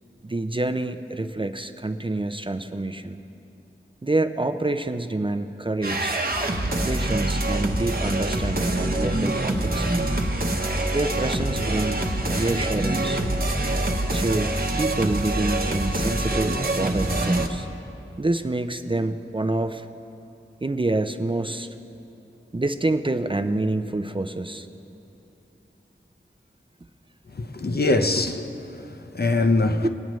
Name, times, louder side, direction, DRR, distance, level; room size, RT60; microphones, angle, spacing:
voice 1, 0.2-3.2 4.0-6.2 6.8-10.1 10.9-13.2 14.1-17.7 18.2-19.9 20.6-21.7 22.5-24.7 29.8-29.9, right 2 dB, 25° right, 0.5 m, -27 dB
sound 1, 5.8-17.5, right 1 dB, 45° right, 0.9 m, -25 dB
voice 2, 27.3-29.9, left 2 dB, 50° left, 0.7 m, -23 dB
20.0 x 8.7 x 3.1 m
wide cardioid pair, 40°, 20 cm